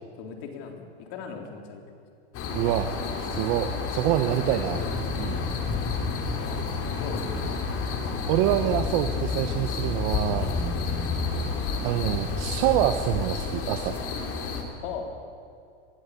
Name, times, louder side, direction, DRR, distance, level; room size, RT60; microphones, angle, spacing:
voice 1, 0.2-1.8 6.3-7.6 14.8-15.1, left 6 dB, 65° left, 3 dB, 3.9 m, -38 dB
sound 1, 2.3-14.6, left 4 dB, 40° left, 3.5 m, -30 dB
voice 2, 2.5-2.9 3.2-4.8 5.2-5.5 8.3-10.5 11.8-13.9, right 13 dB, 60° right, 7 dB, 1.3 m, -26 dB
22.5 x 15.0 x 8.6 m, 2.4 s
supercardioid pair, 130°, 33 cm